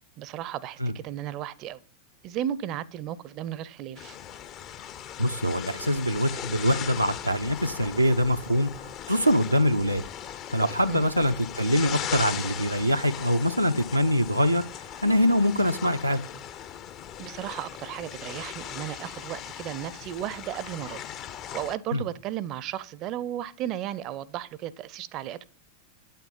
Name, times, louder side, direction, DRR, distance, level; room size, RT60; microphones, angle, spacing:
voice 1, 0.2-1.8 2.2-4.2 10.9-11.1 17.2-21.0 21.5-25.5, right 11 dB, 40° right, 0.6 m, -34 dB
sound 1, 4.0-21.8, left 9 dB, 35° left, 0.6 m, -38 dB
voice 2, 5.2-8.7 9.1-10.0 10.5-14.6 15.0-16.2 21.9-22.0, equal, 90° right, 0.6 m, -24 dB
9.2 x 9.0 x 5.4 m
figure-of-eight pair, 90°, 0 cm